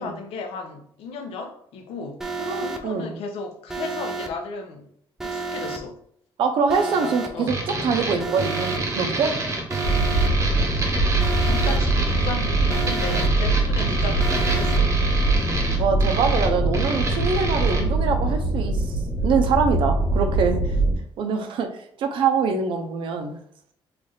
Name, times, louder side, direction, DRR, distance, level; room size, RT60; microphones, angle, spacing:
voice 1, 0.0-2.2 2.6-4.9 5.2-6.0 7.0-7.6 11.1-15.0, left 4 dB, 80° left, 4 dB, 0.7 m, -35 dB
Alarm, 2.2-2.8 3.7-4.3 5.2-5.8 6.7-7.3 8.2-8.8 9.7-10.3 11.2-11.8 12.7-13.3 14.2-14.8, right 4 dB, 5° right, 0.3 m, -31 dB
voice 2, 2.4-3.2 6.4-9.3 13.8-14.0 15.8-18.9 19.2-20.6 21.2-21.7 22.0-23.4, right 5 dB, 60° right, 5 dB, 0.6 m, -24 dB
sound 1, 7.5-17.8, right 3 dB, 30° right, 0.8 m, -28 dB
sound 2, 9.8-20.9, right 2 dB, 20° left, 1.4 m, -22 dB
3.2 x 2.5 x 3.9 m, 0.67 s
cardioid pair, 165°, 10 cm